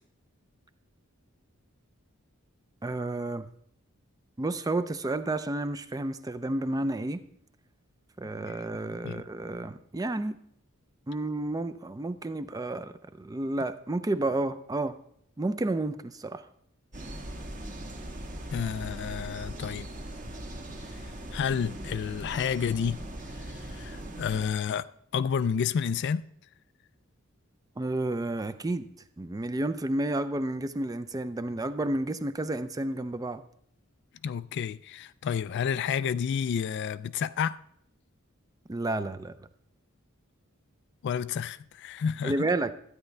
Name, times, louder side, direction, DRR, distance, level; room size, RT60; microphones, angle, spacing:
voice 1, 2.8-3.5 4.4-7.2 8.2-10.4 11.1-15.0 15.4-16.5 27.8-28.9 29.2-33.4 38.7-39.4 42.2-42.7, right 2 dB, 15° right, 0.4 m, -31 dB
sound 1, 16.9-24.5, right 1 dB, 35° right, 1.3 m, -40 dB
voice 2, 18.5-19.9 21.0-23.0 23.5-24.9 25.1-26.3 34.2-37.6 41.0-42.5, left 7 dB, 55° left, 0.3 m, -30 dB
13.0 x 9.2 x 3.3 m
head